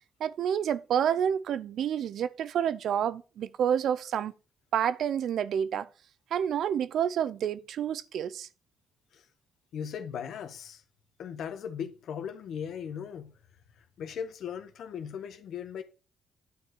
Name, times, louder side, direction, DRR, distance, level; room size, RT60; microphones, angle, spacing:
voice 1, 0.2-4.3 4.7-5.9 6.3-8.5, right 9 dB, 70° right, 0.6 m, -29 dB
voice 2, 9.7-10.8 11.2-13.3 14.0-15.8, left 8 dB, 70° left, 1.4 m, -38 dB
10.0 x 4.8 x 6.3 m
cardioid pair, 90°, 0 cm